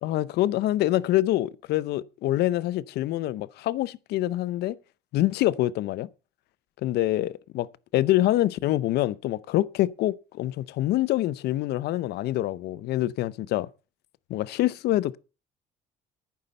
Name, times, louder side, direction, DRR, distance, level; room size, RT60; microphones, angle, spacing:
voice 1, 0.0-4.8 5.1-6.1 6.8-7.7 7.9-13.7 14.3-15.2, left 15 dB, 75° left, 0.7 m, -25 dB
11.0 x 9.5 x 5.3 m
cardioid pair, 110°, 17 cm